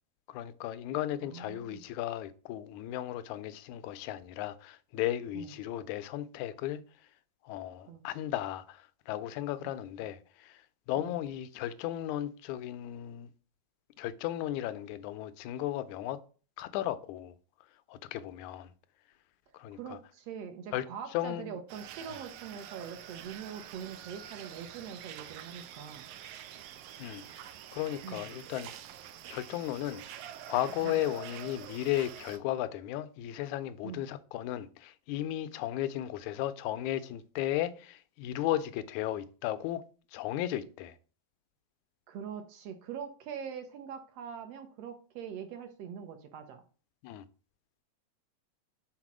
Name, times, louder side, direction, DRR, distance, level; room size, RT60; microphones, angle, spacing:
voice 1, 0.3-6.8 7.5-10.6 10.9-13.3 14.0-16.2 16.6-17.3 17.9-18.7 19.5-20.0 20.7-20.8 21.1-21.6 27.0-27.2 27.7-28.7 29.3-30.0 30.5-39.8 40.1-41.0 47.0-47.2, left 13 dB, 85° left, 2.0 m, -35 dB
voice 2, 1.2-1.8 5.3-5.5 7.9-8.0 9.6-9.7 10.9-11.2 19.7-26.1 28.0-28.3 30.8-31.0 33.8-34.0 42.1-46.6, right 7 dB, 70° right, 1.7 m, -43 dB
sound 1, 21.7-32.4, right 10 dB, 85° right, 2.1 m, -47 dB
5.9 x 4.2 x 6.0 m
omnidirectional pair, 3.3 m